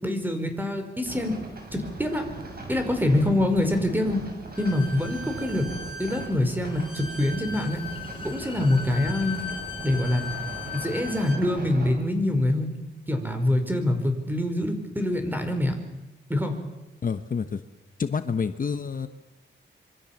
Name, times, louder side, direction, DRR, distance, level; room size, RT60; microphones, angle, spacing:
voice 1, 0.0-1.4 1.7-2.3 2.7-4.2 4.6-5.7 6.0-7.8 8.2-9.4 9.8-10.2 10.7-12.7 13.1-15.7 16.3-16.6, left 1 dB, 10° right, 6 dB, 4.9 m, -25 dB
sound 1, 1.0-11.9, right 2 dB, 50° right, 6.5 m, -40 dB
Bowed string instrument, 4.5-11.4, left 4 dB, 25° left, 6.1 m, -38 dB
voice 2, 17.0-17.6 18.0-19.1, left 6 dB, 45° left, 9 dB, 1.1 m, -28 dB
26.0 x 23.5 x 7.3 m, 1.0 s
wide cardioid pair, 100°, 19 cm